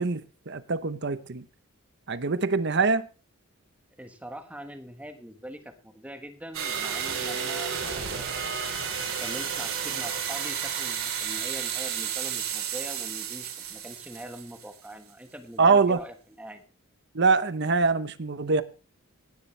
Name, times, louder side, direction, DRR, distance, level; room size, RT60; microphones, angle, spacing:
voice 1, 0.0-1.4 2.1-3.1 15.6-16.0 17.1-18.6, right 4 dB, 55° right, 0.9 m, -24 dB
voice 2, 4.0-8.6 9.2-16.6, right 1 dB, 5° right, 1.4 m, -43 dB
sound 1, 6.5-14.9, right 7 dB, 75° right, 3.5 m, -32 dB
17.0 x 9.9 x 3.3 m
head